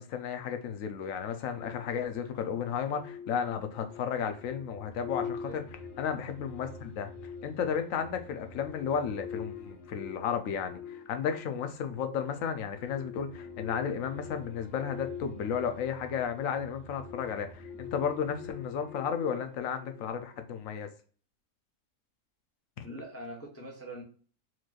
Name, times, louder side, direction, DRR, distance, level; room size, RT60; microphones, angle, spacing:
voice 1, 0.0-5.6 6.0-20.9 22.8-22.9, left 7 dB, 70° left, 1.0 m, -33 dB
sound 1, 1.5-20.4, left 6 dB, 55° left, 1.5 m, -45 dB
voice 2, 22.8-24.0, equal, 15° left, 0.7 m, -43 dB
4.5 x 3.0 x 2.4 m
omnidirectional pair, 1.5 m